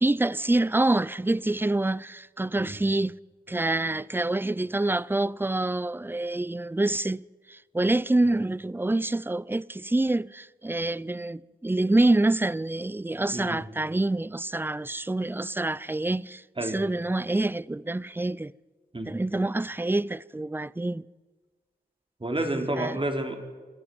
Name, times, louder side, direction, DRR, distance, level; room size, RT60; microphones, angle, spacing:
voice 1, 0.0-3.1 3.5-7.2 7.5-18.5 19.1-21.0 22.8-23.0, right 2 dB, 15° right, 0.6 m, -26 dB
voice 2, 13.3-13.6 16.6-16.8 18.9-19.1 22.2-23.4, right 1 dB, 35° right, 4.2 m, -29 dB
25.5 x 14.5 x 9.6 m
cardioid pair, 50°, 16 cm